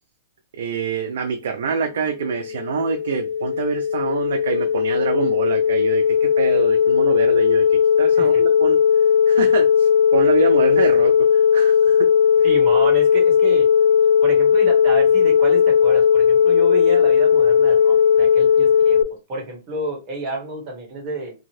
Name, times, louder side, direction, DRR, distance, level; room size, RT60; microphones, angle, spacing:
voice 1, 0.6-8.8 9.3-12.0 12.4-12.5, right 6 dB, 70° right, 0.5 m, -26 dB
sound 1, 2.0-19.0, left 7 dB, 85° left, 0.4 m, -17 dB
voice 2, 12.4-13.7 14.2-19.0 19.3-21.3, right 2 dB, 35° right, 1.4 m, -29 dB
2.7 x 2.3 x 3.1 m
hypercardioid pair, 145°, 0 cm